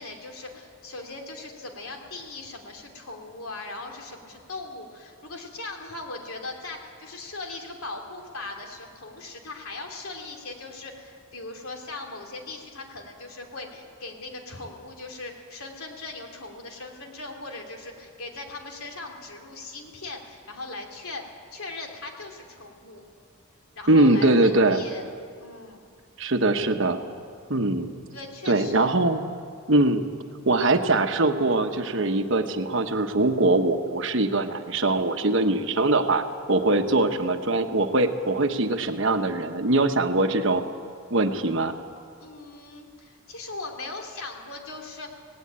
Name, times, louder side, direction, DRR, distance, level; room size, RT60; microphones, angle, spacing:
voice 1, 0.0-21.2 21.5-23.0 23.7-25.0 25.4-25.8 28.1-28.9 42.2-45.2, left 2 dB, 80° left, 2 dB, 2.9 m, -39 dB
voice 2, 23.9-24.8 26.2-27.0 27.5-27.9 28.5-29.2 29.7-30.0 30.4-40.6 41.1-41.7, right 2 dB, 60° right, 6 dB, 1.2 m, -22 dB
18.0 x 18.0 x 8.8 m, 2.1 s
head